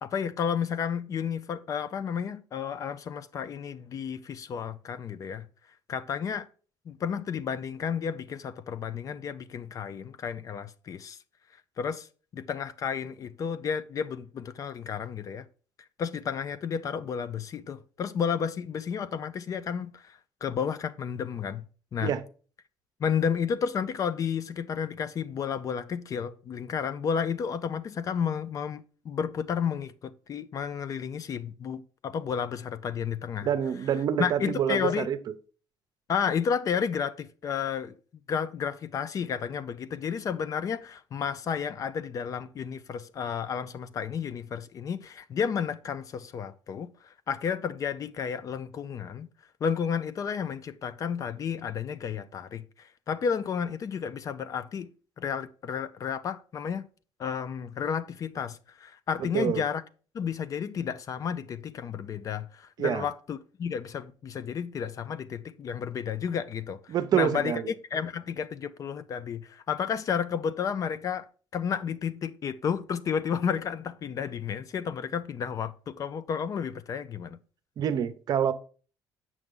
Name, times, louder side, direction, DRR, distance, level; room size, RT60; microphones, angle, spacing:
voice 1, 0.0-5.5 5.9-6.5 6.9-11.2 11.8-12.1 12.3-15.5 16.0-21.6 21.9-22.1 23.0-33.5 34.2-35.1 36.1-37.9 38.3-49.3 49.6-54.9 55.2-56.8 57.2-59.8 60.1-67.6 67.9-71.3 71.5-77.4, left 7 dB, 45° left, 0.5 m, -32 dB
voice 2, 33.4-35.2 59.2-59.6 62.8-63.1 66.9-67.7 77.8-78.5, right 9 dB, 55° right, 0.7 m, -27 dB
7.8 x 6.2 x 3.8 m
cardioid pair, 115°, 8 cm